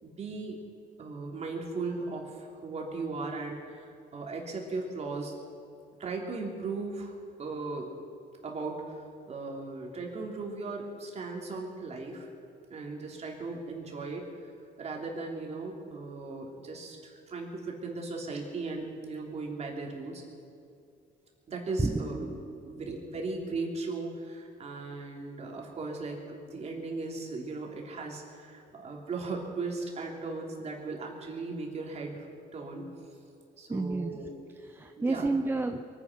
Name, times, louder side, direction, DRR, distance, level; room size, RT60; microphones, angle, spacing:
voice 1, 0.0-0.6 1.0-5.3 6.0-7.9 8.4-12.3 12.7-14.5 14.8-20.2 21.5-22.2 22.6-32.9 33.6-34.5 35.0-35.4, right 3 dB, 40° right, 0 dB, 3.2 m, -37 dB
voice 2, 21.8-22.8 33.7-34.3 34.6-35.8, right 3 dB, 15° right, 5 dB, 0.7 m, -31 dB
23.0 x 9.8 x 6.0 m, 2.5 s
cardioid pair, 110°, 17 cm